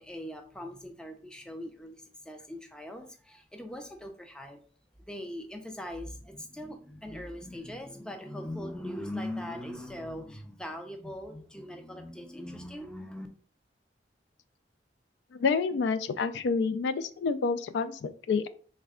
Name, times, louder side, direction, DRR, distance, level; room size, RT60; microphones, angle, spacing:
voice 1, 0.0-4.6 5.0-13.3, left 1 dB, 5° left, 6 dB, 0.4 m, -40 dB
voice 2, 15.3-18.5, left 5 dB, 85° left, 12 dB, 0.3 m, -28 dB
3.3 x 2.2 x 3.5 m, 0.43 s
head